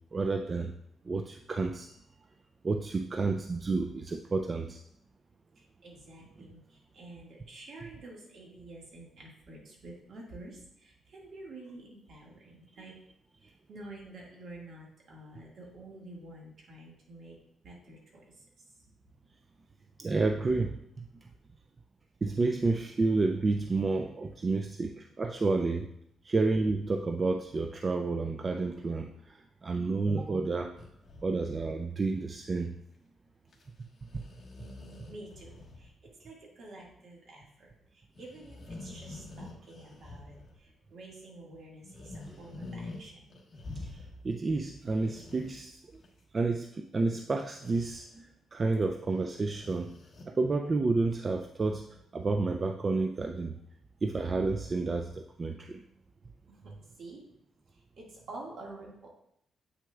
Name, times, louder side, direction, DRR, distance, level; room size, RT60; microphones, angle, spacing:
voice 1, 0.1-0.7 1.1-1.9 2.6-4.8 20.0-21.3 22.2-25.9 26.2-30.7 31.2-32.8 34.1-34.2 42.3-42.4 43.8-46.0 46.3-49.9 50.3-53.6 54.0-55.8, right 3 dB, 30° right, 5 dB, 0.4 m, -30 dB
voice 2, 5.6-12.9 13.4-17.4 17.6-18.7 35.1-35.9 36.2-43.3 56.5-57.2 57.7-59.1, right 2 dB, 60° right, -2 dB, 1.9 m, -49 dB
sound 1, 30.8-32.0 33.5-33.7 34.0-35.9 36.2-36.3 38.2-40.7 41.8-43.0 43.3-44.3 44.7-46.1 47.6-48.0 49.1-50.2, left 2 dB, 40° left, 1.4 m, -46 dB
8.0 x 6.0 x 2.4 m, 0.73 s
cardioid pair, 115°, 0 cm